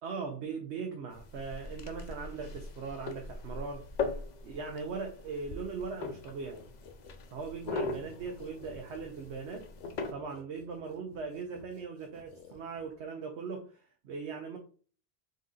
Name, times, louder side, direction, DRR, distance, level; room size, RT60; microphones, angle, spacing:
voice 1, 0.0-3.8 4.4-6.6 7.3-9.7 10.1-14.6, right 5 dB, 85° right, 1.0 m, -39 dB
sound 1, 1.1-10.1, left 4 dB, 55° left, 0.5 m, -40 dB
sound 2, 6.5-13.0, left 5 dB, 80° left, 0.9 m, -56 dB
3.9 x 2.6 x 3.6 m
omnidirectional pair, 1.1 m